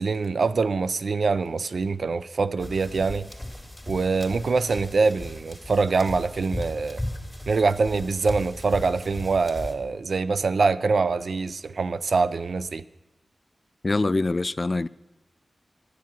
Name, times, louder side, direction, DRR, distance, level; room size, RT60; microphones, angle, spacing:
voice 1, 0.0-3.3 3.9-7.0 7.5-12.8, right 4 dB, 75° right, 0.4 m, -24 dB
sound 1, 2.6-9.7, left 1 dB, 5° left, 2.5 m, -37 dB
voice 2, 13.8-14.9, left 2 dB, 45° left, 0.3 m, -24 dB
11.0 x 7.4 x 7.4 m
cardioid pair, 45°, 0 cm